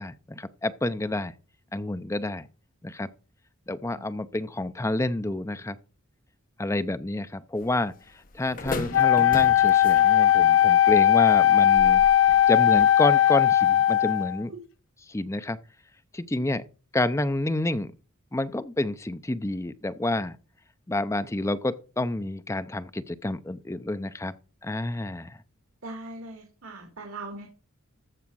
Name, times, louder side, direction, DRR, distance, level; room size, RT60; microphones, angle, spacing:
voice 1, 0.0-1.3 1.7-2.5 2.8-3.1 3.7-5.8 6.6-7.9 8.3-12.0 12.5-14.5 15.1-15.6 16.1-16.6 16.9-17.9 18.3-20.4 20.9-24.3 24.6-25.4, left 2 dB, 15° left, 0.5 m, -29 dB
voice 2, 3.9-4.3 25.8-27.5, right 2 dB, 80° right, 2.2 m, -40 dB
sound 1, 7.6-12.9, left 3 dB, 40° left, 1.0 m, -39 dB
Wind instrument woodwind instrument, 8.9-14.4, left 11 dB, 65° left, 0.5 m, -19 dB
14.0 x 5.0 x 6.1 m
head